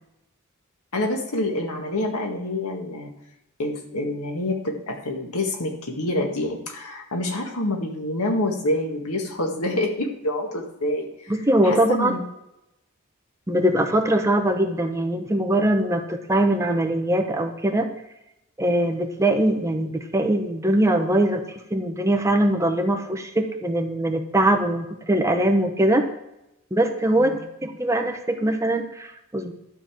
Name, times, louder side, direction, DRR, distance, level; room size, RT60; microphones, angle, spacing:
voice 1, 0.9-3.1 3.6-11.3 11.6-12.2 27.2-27.4, left 1 dB, 85° left, 3 dB, 1.8 m, -27 dB
voice 2, 11.3-12.1 13.5-17.9 18.6-21.4 21.7-26.1 26.7-29.5, right 1 dB, 15° right, 4 dB, 0.9 m, -22 dB
12.0 x 5.5 x 7.6 m, 0.86 s
head